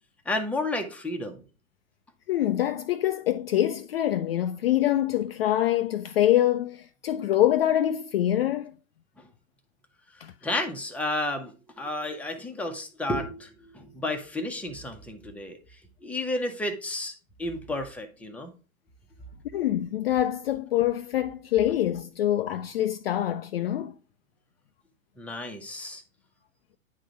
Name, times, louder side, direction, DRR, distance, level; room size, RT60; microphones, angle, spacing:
voice 1, 0.3-1.4 10.4-15.6 16.0-17.1 17.4-18.5 25.2-26.0, left 1 dB, 5° left, 0.9 m, -32 dB
voice 2, 2.3-8.7 10.2-10.3 19.5-23.9, left 12 dB, 45° left, 0.4 m, -25 dB
9.7 x 3.8 x 4.6 m
figure-of-eight pair, 110°, 43 cm